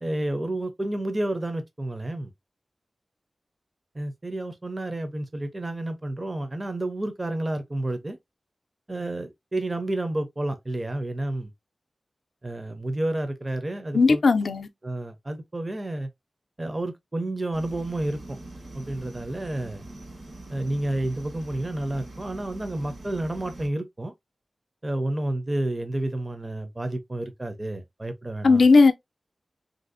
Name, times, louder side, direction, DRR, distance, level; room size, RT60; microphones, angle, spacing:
voice 1, 0.0-2.3 3.9-8.2 8.9-11.5 12.4-14.2 14.8-16.1 16.6-18.4 18.7-19.8 20.5-24.1 24.8-28.6, right 1 dB, 25° right, 0.4 m, -30 dB
voice 2, 13.9-14.7 28.4-28.9, left 4 dB, 80° left, 0.4 m, -17 dB
sound 1, 17.5-23.7, right 2 dB, 70° right, 1.5 m, -43 dB
3.4 x 2.5 x 2.4 m
wide cardioid pair, 105°, 0 cm